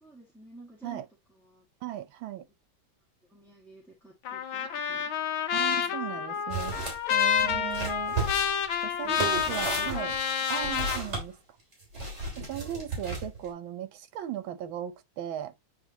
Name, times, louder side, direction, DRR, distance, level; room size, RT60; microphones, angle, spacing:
voice 1, 0.0-1.0 1.4-1.6 3.3-5.1 5.7-6.0 7.4-7.9 9.0-10.1, right 2 dB, ahead, 2.0 m, -50 dB
voice 2, 1.8-2.5 5.5-6.8 7.1-8.2 8.8-10.1 10.5-11.4 12.4-15.5, right 11 dB, 80° right, 1.6 m, -37 dB
Trumpet, 4.2-11.0, left 8 dB, 80° left, 1.7 m, -29 dB
sound 1, 6.5-7.0 7.4-11.2 11.9-13.5, right 3 dB, 35° right, 3.3 m, -34 dB
9.4 x 4.2 x 2.9 m
omnidirectional pair, 2.2 m